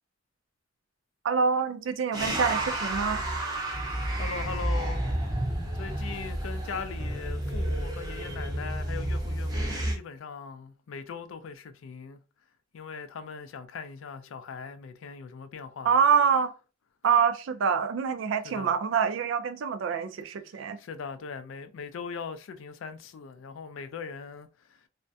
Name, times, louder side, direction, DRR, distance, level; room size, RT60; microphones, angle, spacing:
voice 1, 1.2-3.2 15.8-16.5 17.0-20.8, right 6 dB, 70° right, 0.4 m, -26 dB
sound 1, 2.1-10.0, right 1 dB, 20° right, 0.6 m, -31 dB
voice 2, 3.8-5.0 5.7-12.2 12.7-16.0 18.4-18.7 20.5-24.9, left 5 dB, 80° left, 0.4 m, -40 dB
2.4 x 2.1 x 2.6 m
head